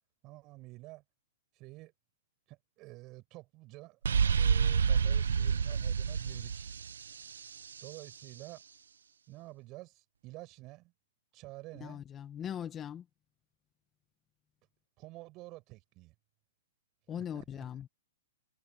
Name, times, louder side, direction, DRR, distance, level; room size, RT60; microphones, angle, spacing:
voice 1, 0.2-1.0 1.6-1.9 2.5-4.0 4.3-6.7 7.8-8.6 9.3-10.9 11.3-12.0 15.0-16.1 17.1-17.7, right 20 dB, 35° right, 7.3 m, -49 dB
sound 1, 4.0-7.8, right 6 dB, 85° right, 0.9 m, -28 dB
voice 2, 11.8-13.0 17.1-17.9, left 9 dB, 20° left, 1.0 m, -40 dB
hypercardioid pair, 135°, 0 cm